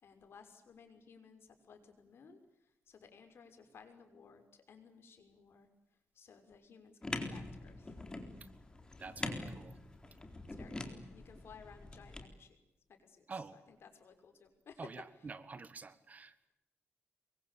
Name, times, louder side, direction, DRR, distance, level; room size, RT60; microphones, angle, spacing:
voice 1, 0.0-5.7 6.1-7.9 10.6-12.6 12.9-14.9, left 6 dB, 60° left, 7 dB, 6.1 m, -58 dB
sound 1, 7.0-12.3, left 2 dB, 20° left, 4.0 m, -44 dB
voice 2, 9.0-9.8 13.3-13.6 14.8-16.5, right 4 dB, 35° right, 14 dB, 1.7 m, -48 dB
27.5 x 23.5 x 8.6 m, 0.86 s
wide cardioid pair, 125°, 5 cm